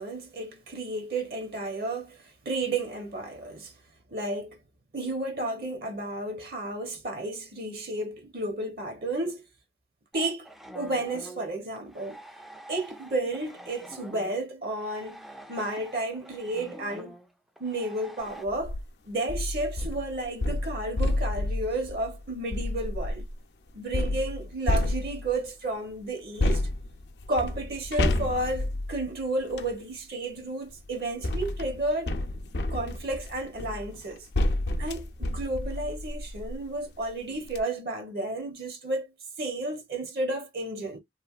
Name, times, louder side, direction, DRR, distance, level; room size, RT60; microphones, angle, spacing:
voice 1, 0.0-3.7 4.1-4.6 4.9-9.4 10.1-10.5 10.7-12.2 12.7-15.2 15.5-17.2 17.6-18.8 19.1-23.2 23.7-26.7 27.3-32.1 32.7-34.3 34.8-39.1 39.4-41.0, right 2 dB, 55° right, 0.8 m, -32 dB
sound 1, 10.1-18.4, right 1 dB, ahead, 0.4 m, -46 dB
Wood Noise Soft, 18.5-18.8 19.3-23.3 23.9-25.5 26.4-29.8 30.7-36.6 37.1-37.2 37.4-37.6, left 1 dB, 70° left, 0.6 m, -30 dB
3.2 x 2.5 x 2.3 m
head